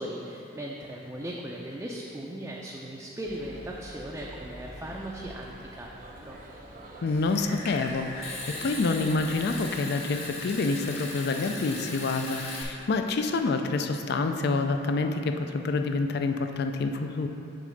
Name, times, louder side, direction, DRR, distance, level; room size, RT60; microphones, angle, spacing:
voice 1, 0.0-6.4, right 1 dB, 15° right, -3 dB, 0.4 m, -38 dB
sound 1, 3.2-9.7, right 1 dB, 50° right, 0.8 m, -46 dB
voice 2, 7.0-17.3, left 3 dB, 60° left, 6 dB, 0.4 m, -27 dB
Water tap faucet / Sink (filling or washing) / Trickle dribble, 7.1-12.6, left 2 dB, 35° left, 0.9 m, -38 dB
6.7 x 3.8 x 6.4 m, 3.0 s
head